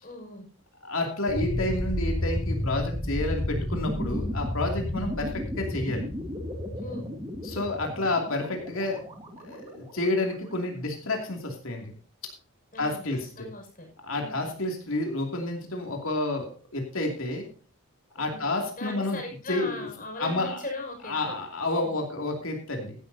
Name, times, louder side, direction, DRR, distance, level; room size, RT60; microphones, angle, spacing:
voice 1, 0.0-0.4 6.8-7.1 12.7-13.9 14.1-14.4 18.2-18.5 18.8-21.4 21.7-21.9, left 2 dB, 40° left, 2 dB, 6.2 m, -39 dB
voice 2, 0.8-6.0 7.4-9.0 9.4-11.8 12.8-13.5 14.0-17.5 18.1-19.2 19.5-19.9 20.2-20.6 21.0-23.0, left 2 dB, 75° left, 2 dB, 2.7 m, -30 dB
sound 1, 1.3-10.1, left 1 dB, 25° right, 2.4 m, -32 dB
16.0 x 11.5 x 2.8 m, 0.38 s
head